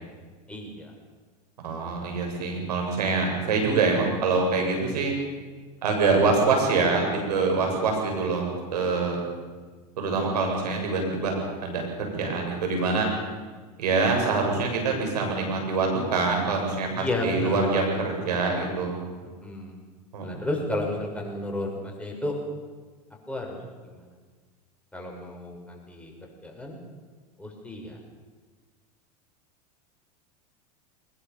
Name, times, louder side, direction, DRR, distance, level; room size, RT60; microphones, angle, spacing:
voice 1, 0.5-0.9 7.7-7.8 11.2-11.5 14.9-15.0 16.9-17.7 19.4-19.7 20.2-22.3 23.3-23.6 23.8-24.0 24.9-26.1 26.4-26.8 27.4-28.0, left 1 dB, 5° left, 0 dB, 6.5 m, -32 dB
voice 2, 1.6-5.2 5.8-9.2 10.0-11.3 11.6-13.1 13.8-19.0 20.1-20.4, right 4 dB, 80° right, 2 dB, 7.6 m, -25 dB
22.0 x 21.0 x 7.1 m, 1.4 s
hypercardioid pair, 90°, 20 cm